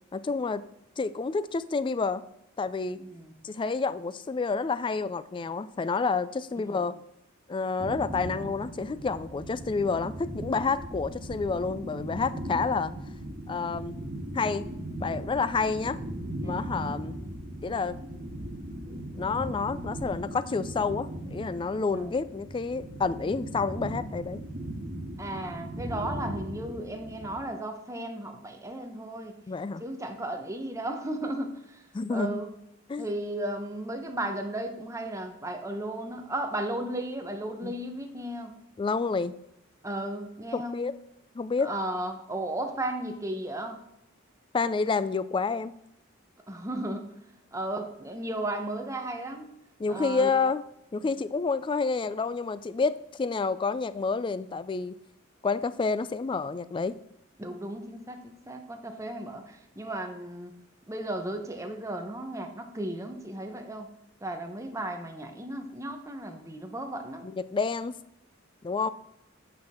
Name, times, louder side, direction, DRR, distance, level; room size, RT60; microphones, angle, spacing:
voice 1, 0.1-0.6 1.0-2.2 2.6-3.0 3.4-6.9 7.5-12.9 13.5-14.0 14.3-14.6 15.0-16.0 16.4-17.1 17.6-18.0 19.2-24.4 29.5-29.8 31.9-32.4 32.9-33.1 37.6-37.7 38.8-39.3 40.5-40.9 41.3-41.7 44.5-45.7 49.8-50.6 50.9-55.0 55.4-56.9 67.2-67.9 68.6-68.9, left 4 dB, 25° left, 15 dB, 0.3 m, -29 dB
voice 2, 3.0-3.3 6.6-6.9 16.4-16.8 21.9-22.1 25.2-29.4 29.8-32.5 33.0-38.6 39.8-40.9 41.6-43.8 46.5-47.1 47.5-49.5 49.9-50.3 51.0-51.1 57.4-60.5 60.9-63.9 64.2-67.3, right 1 dB, 15° right, 5 dB, 0.9 m, -35 dB
sound 1, 7.8-27.4, right 1 dB, 40° right, 1.9 m, -38 dB
8.7 x 6.0 x 3.6 m, 0.81 s
head